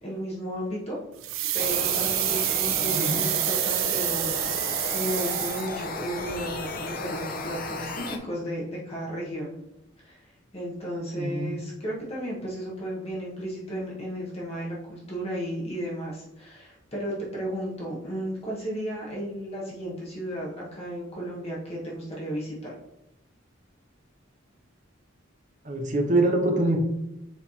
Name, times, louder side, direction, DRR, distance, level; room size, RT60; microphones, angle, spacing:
voice 1, 0.0-1.0 1.5-9.5 10.0-22.7, equal, 30° left, -5 dB, 1.2 m, -34 dB
sound 1, 1.2-6.0 6.3-6.4, right 13 dB, 80° right, 0.5 m, -27 dB
sound 2, 1.6-8.2, left 3 dB, 45° left, 0.7 m, -34 dB
voice 2, 2.8-3.2 11.2-11.5 25.6-26.8, right 2 dB, 40° right, 3 dB, 1.0 m, -24 dB
7.3 x 3.3 x 4.2 m, 0.86 s
head